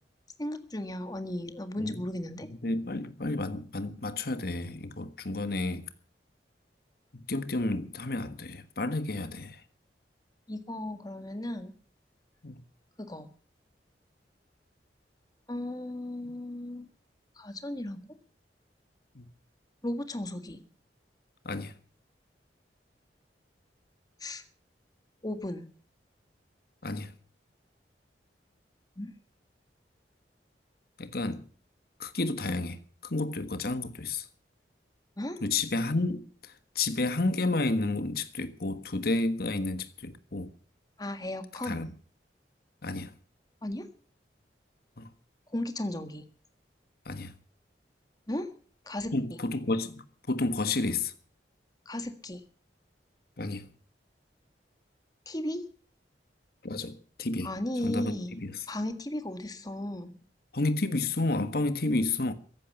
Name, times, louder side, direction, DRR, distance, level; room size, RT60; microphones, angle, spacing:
voice 1, 0.4-2.5 10.5-11.7 13.0-13.3 15.5-16.9 17.4-18.0 19.8-20.6 24.2-24.4 25.2-25.7 29.0-29.1 35.2-35.4 41.0-41.8 43.6-43.9 45.5-46.3 48.3-48.5 48.8-49.1 51.8-52.4 55.2-55.6 57.4-58.3 58.7-60.1, left 1 dB, 20° left, 1.7 m, -35 dB
voice 2, 2.5-5.9 7.1-9.6 12.4-12.6 19.1-19.3 21.4-21.7 26.8-27.1 31.0-31.4 32.0-34.3 35.4-40.5 41.6-41.9 42.8-43.1 45.0-45.1 47.0-47.3 49.1-51.1 53.4-53.7 56.6-57.5 57.8-58.6 60.5-62.3, left 2 dB, 60° left, 1.5 m, -31 dB
15.0 x 11.0 x 7.0 m
head